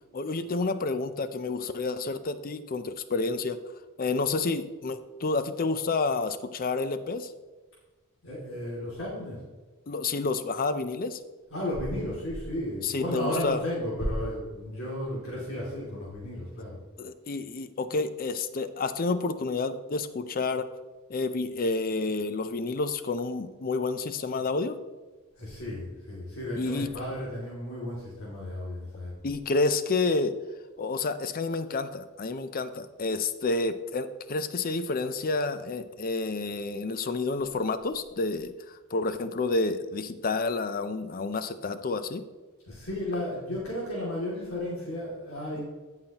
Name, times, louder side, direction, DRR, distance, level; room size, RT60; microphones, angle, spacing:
voice 1, 0.1-3.6 4.0-7.3 9.9-11.2 12.8-13.6 17.0-20.7 21.1-24.8 26.6-26.9 29.2-30.3 30.8-42.2, left 3 dB, 45° left, 11 dB, 0.6 m, -29 dB
voice 2, 8.2-9.4 11.5-16.8 25.4-29.1 42.7-45.6, left 1 dB, 85° left, -6 dB, 2.5 m, -33 dB
16.5 x 5.8 x 3.0 m, 1.3 s
head